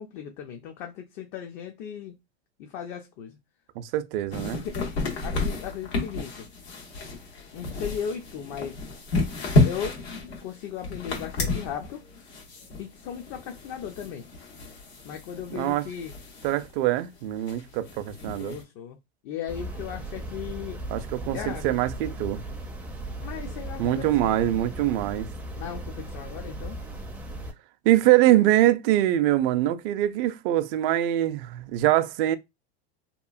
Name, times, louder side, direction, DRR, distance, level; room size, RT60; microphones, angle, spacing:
voice 1, 0.0-2.2 2.6-3.4 4.6-4.9 5.2-6.5 7.5-8.8 9.6-10.0 10.4-12.1 12.8-14.3 15.0-16.1 18.3-19.0 19.2-20.8 21.3-21.7 23.2-24.4 25.5-26.8, left 8 dB, 55° left, 0.5 m, -36 dB
voice 2, 3.8-4.6 15.5-15.9 16.4-18.6 20.9-22.4 23.8-25.3 27.8-32.4, right 14 dB, 60° right, 0.5 m, -23 dB
sound 1, 4.3-16.7 17.0-17.1 17.3-18.6, left 2 dB, 85° left, 1.2 m, -31 dB
sound 2, 19.5-27.5, right 1 dB, 5° right, 0.4 m, -37 dB
2.9 x 2.3 x 2.3 m
hypercardioid pair, 105°, 31 cm